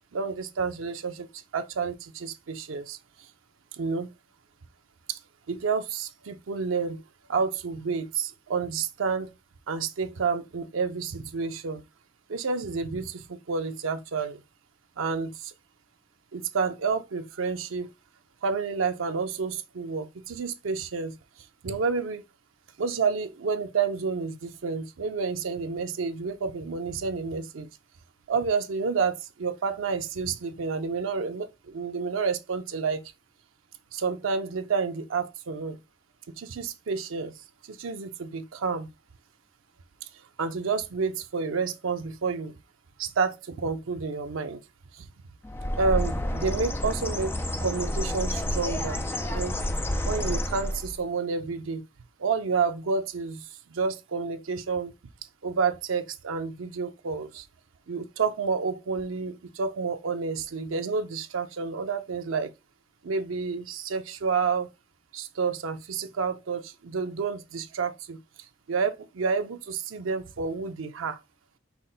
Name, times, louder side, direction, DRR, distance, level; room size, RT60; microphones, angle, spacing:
voice 1, 0.1-3.0 3.8-4.1 5.1-5.2 5.5-7.0 7.3-9.3 9.7-11.8 12.3-14.4 15.0-15.5 16.3-17.9 18.4-21.1 21.6-22.2 22.8-27.7 28.3-33.0 33.9-35.8 36.4-37.3 37.7-38.9 40.4-42.5 43.0-44.6 45.0-45.1 45.8-49.0 49.3-49.6 50.1-51.8 52.2-53.4 53.7-54.9 55.4-57.4 57.9-62.5 63.0-64.7 65.1-68.2 68.7-71.2, right 5 dB, 90° right, 0.5 m, -29 dB
Bird, 45.4-51.0, left 1 dB, 10° left, 0.3 m, -29 dB
5.7 x 2.1 x 3.8 m
head